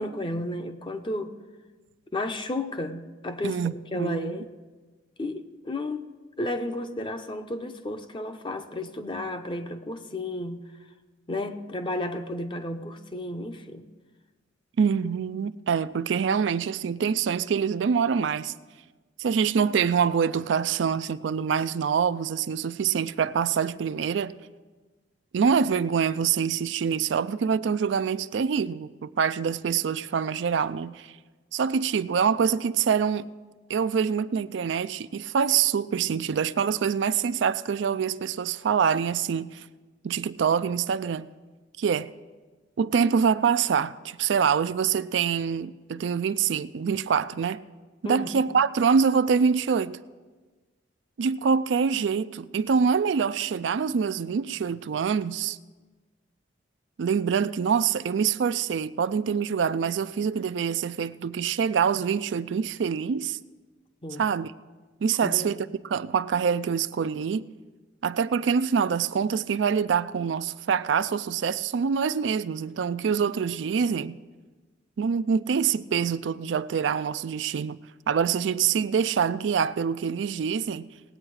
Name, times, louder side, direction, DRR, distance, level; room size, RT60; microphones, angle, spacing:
voice 1, 0.0-1.3 2.1-4.5 5.2-6.1 6.4-10.6 11.3-13.9 48.0-48.5 64.0-64.2 65.2-65.6, left 1 dB, 25° left, 0.7 m, -33 dB
voice 2, 3.4-4.4 14.8-18.5 19.2-24.4 25.3-31.1 31.5-33.3 33.7-39.6 40.0-41.3 41.8-42.1 42.8-47.6 48.0-50.0 51.2-55.6 57.0-63.4 64.2-64.5 65.0-67.5 68.0-74.2 75.0-77.8 78.1-80.9, right 6 dB, 65° right, 0.4 m, -25 dB
19.0 x 8.7 x 4.8 m
head